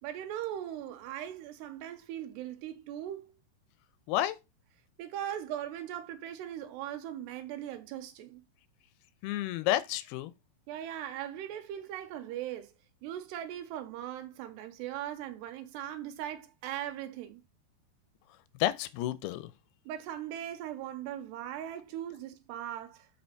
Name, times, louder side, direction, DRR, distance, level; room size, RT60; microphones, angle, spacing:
voice 1, 0.0-3.3 5.0-8.4 10.7-12.7 13.0-17.4 19.9-23.1, right 11 dB, 90° right, 3.0 m, -39 dB
voice 2, 4.1-4.4 9.2-10.3 18.5-19.5, left 14 dB, 80° left, 2.5 m, -30 dB
6.9 x 5.1 x 4.4 m
omnidirectional pair, 4.8 m